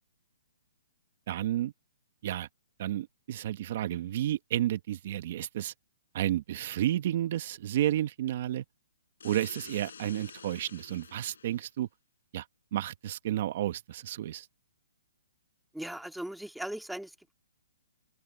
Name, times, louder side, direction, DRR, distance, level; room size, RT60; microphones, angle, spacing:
voice 1, 1.3-1.7 2.2-2.5 2.8-5.7 6.1-8.6 9.2-11.9 12.3-12.4 12.7-14.5, right 12 dB, 50° right, 1.5 m, -31 dB
sound 1, 9.2-11.7, left 6 dB, 80° left, 5.9 m, -49 dB
voice 2, 15.7-17.3, right 1 dB, ahead, 2.0 m, -39 dB
open air
hypercardioid pair, 150°, 0 cm